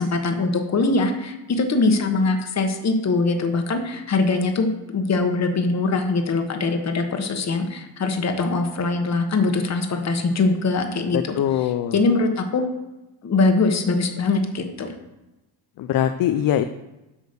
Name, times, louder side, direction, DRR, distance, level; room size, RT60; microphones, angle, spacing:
voice 1, 0.0-12.6 13.2-14.9, left 3 dB, 40° left, 5 dB, 1.2 m, -22 dB
voice 2, 11.4-12.0 15.8-16.7, left 11 dB, 55° left, 9 dB, 0.5 m, -22 dB
8.3 x 5.1 x 6.7 m, 1.0 s
cardioid pair, 130°, 43 cm